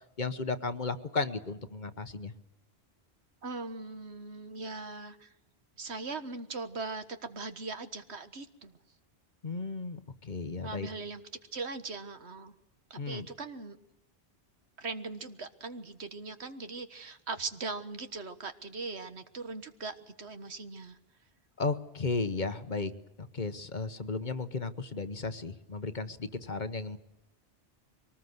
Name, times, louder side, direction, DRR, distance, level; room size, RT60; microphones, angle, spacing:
voice 1, 0.2-2.3 9.4-10.9 13.0-13.3 21.6-22.9 23.2-27.0, left 3 dB, 45° left, 11 dB, 1.2 m, -34 dB
voice 2, 3.4-5.3 5.8-8.7 10.6-11.2 11.5-12.5 12.9-13.8 14.8-21.0, right 3 dB, 80° right, 9 dB, 1.8 m, -40 dB
24.0 x 19.0 x 8.0 m, 0.89 s
omnidirectional pair, 1.1 m